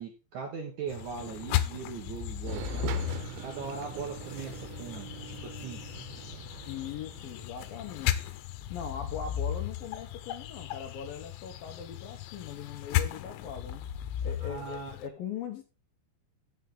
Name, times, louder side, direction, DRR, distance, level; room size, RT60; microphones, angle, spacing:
voice 1, 0.0-2.9 3.4-5.8 14.4-15.0, right 6 dB, 65° right, 1 dB, 2.0 m, -40 dB
sound 1, 0.9-15.1, left 11 dB, 90° left, 3.2 m, -35 dB
sound 2, 2.5-7.5, right 13 dB, 85° right, 3.2 m, -43 dB
voice 2, 6.7-8.2 8.7-13.8 14.2-15.6, left 8 dB, 70° left, 5 dB, 2.4 m, -40 dB
13.5 x 7.1 x 3.9 m, 0.31 s
omnidirectional pair, 5.2 m